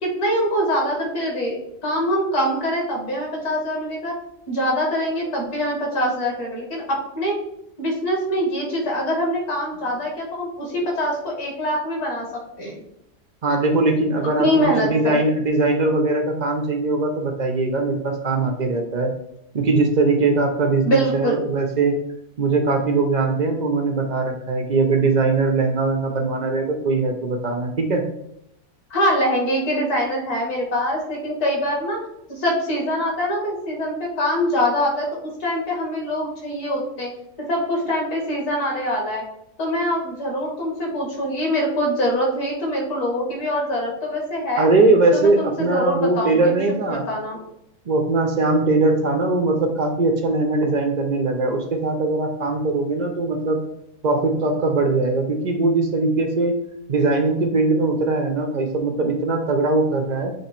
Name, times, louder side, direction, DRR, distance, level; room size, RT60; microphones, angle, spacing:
voice 1, 0.0-4.1 4.5-7.4 7.8-12.3 12.6-12.8 14.4-15.2 20.8-21.3 28.9-32.0 32.3-37.1 37.5-39.2 39.6-44.7 45.1-46.6 46.9-47.4, equal, 60° left, -1 dB, 2.4 m, -24 dB
voice 2, 13.4-19.1 19.5-22.0 22.4-28.0 44.6-47.1 47.9-53.6 54.0-56.6 56.9-60.3, right 3 dB, 85° right, 3 dB, 0.4 m, -20 dB
7.7 x 3.0 x 4.3 m, 0.77 s
omnidirectional pair, 1.8 m